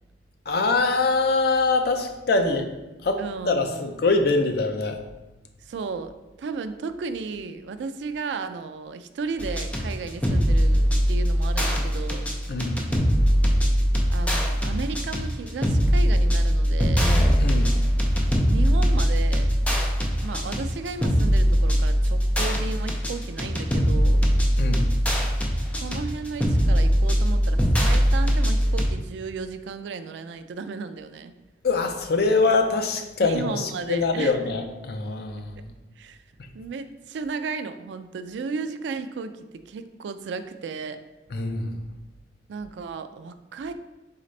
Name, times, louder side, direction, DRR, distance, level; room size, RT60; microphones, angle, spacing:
voice 1, 0.5-2.7 3.0-5.0 12.5-12.8 17.4-17.8 24.6-24.9 31.6-35.6 41.3-41.8, left 3 dB, 60° left, 5 dB, 0.5 m, -24 dB
voice 2, 3.2-4.0 5.6-6.1 6.4-12.3 14.1-17.2 18.5-19.5 20.2-24.2 25.7-31.3 33.2-34.4 36.0-36.2 36.5-41.0 42.5-43.7, right 4 dB, 80° right, 10 dB, 0.3 m, -34 dB
sound 1, 9.4-28.9, equal, 10° left, 0.5 m, -21 dB
4.1 x 3.8 x 3.2 m, 1.0 s
head